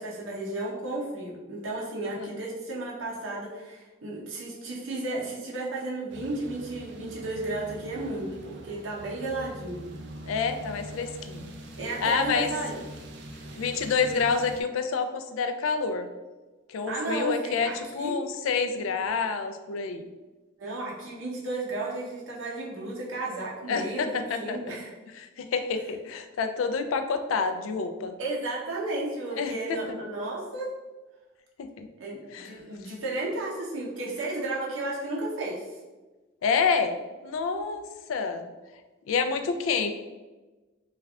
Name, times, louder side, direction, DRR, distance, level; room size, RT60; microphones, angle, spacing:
voice 1, 0.0-9.8 11.8-12.8 16.9-18.2 20.6-24.9 28.2-30.7 32.0-35.6, right 2 dB, 75° right, -4 dB, 0.8 m, -33 dB
sound 1, 6.1-14.6, right 1 dB, 60° right, 0.4 m, -43 dB
voice 2, 10.2-11.5 12.0-12.5 13.6-16.1 16.7-20.1 23.7-24.8 25.1-28.1 29.3-29.8 31.6-31.9 32.3-32.5 36.4-36.9 37.2-37.8 38.1-38.5 39.1-39.9, left 5 dB, 85° left, 8 dB, 0.3 m, -28 dB
3.2 x 2.3 x 3.4 m, 1.2 s
head